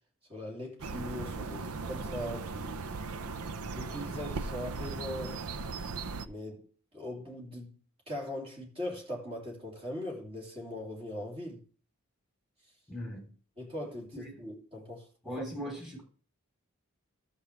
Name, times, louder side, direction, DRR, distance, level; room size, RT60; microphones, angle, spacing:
voice 1, 0.3-2.9 3.7-5.4 6.2-7.8 8.1-11.6 13.6-15.4, left 1 dB, 25° right, 3.1 m, -40 dB
sound 1, 0.8-6.3, right 4 dB, 80° right, 0.6 m, -38 dB
voice 2, 12.9-13.3 14.1-14.4 15.2-16.0, equal, ahead, 3.3 m, -39 dB
13.0 x 7.6 x 3.3 m
head